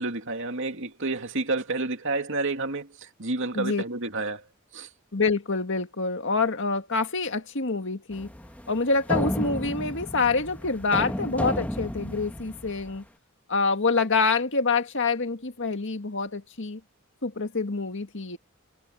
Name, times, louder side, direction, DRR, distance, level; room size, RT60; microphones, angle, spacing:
voice 1, 0.0-4.4 4.7-4.9, right 3 dB, 65° right, 2.6 m, -30 dB
voice 2, 5.1-8.3 8.7-13.0 13.5-16.8 17.2-18.4, left 4 dB, 60° left, 2.0 m, -26 dB
sound 1, 8.1-13.0, equal, 5° left, 1.3 m, -32 dB
head